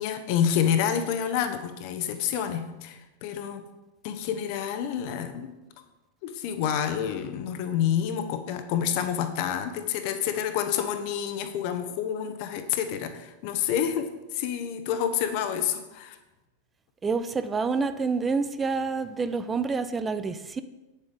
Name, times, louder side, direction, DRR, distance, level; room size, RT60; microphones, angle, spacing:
voice 1, 0.0-3.6 4.0-5.5 6.2-16.2, left 9 dB, 45° left, 8 dB, 1.1 m, -28 dB
voice 2, 17.0-20.6, right 4 dB, 15° right, 11 dB, 0.5 m, -28 dB
9.0 x 7.5 x 5.1 m, 1.0 s
figure-of-eight pair, 90°, 0 cm